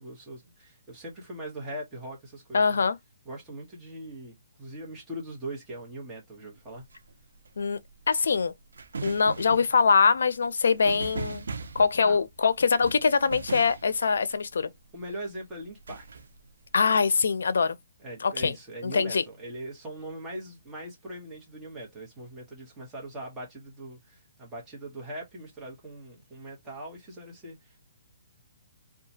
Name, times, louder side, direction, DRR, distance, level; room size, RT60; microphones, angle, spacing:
voice 1, 0.0-2.8 3.2-6.8 12.0-12.2 14.9-16.2 18.0-27.8, right 1 dB, 10° right, 1.0 m, -41 dB
voice 2, 2.5-3.0 7.6-7.8 8.1-8.5 9.0-11.5 11.7-14.7 16.7-17.8 18.2-18.6 18.8-19.2, left 5 dB, 80° left, 0.4 m, -23 dB
sound 1, 6.6-14.9 15.6-16.9, right 4 dB, 85° right, 0.5 m, -40 dB
2.8 x 2.3 x 2.7 m
hypercardioid pair, 165°, 0 cm